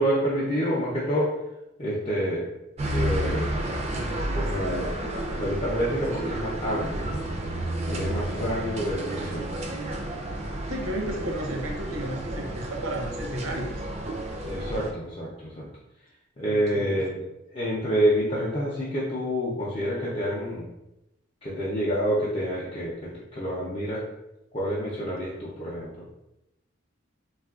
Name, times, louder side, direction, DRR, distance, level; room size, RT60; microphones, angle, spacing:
voice 1, 0.0-1.4 1.8-2.5 2.9-3.6 4.3-5.0 5.4-7.1 7.9-9.5 14.5-15.7 16.4-17.2 17.5-20.7 21.4-24.0 24.5-26.1, equal, 30° left, -7 dB, 0.5 m, -28 dB
sound 1, 2.8-14.9, right 1 dB, 30° right, 0.3 m, -31 dB
voice 2, 10.7-13.7 16.4-17.0, right 1 dB, 80° right, 1 dB, 0.6 m, -33 dB
3.5 x 2.3 x 2.3 m, 0.90 s
head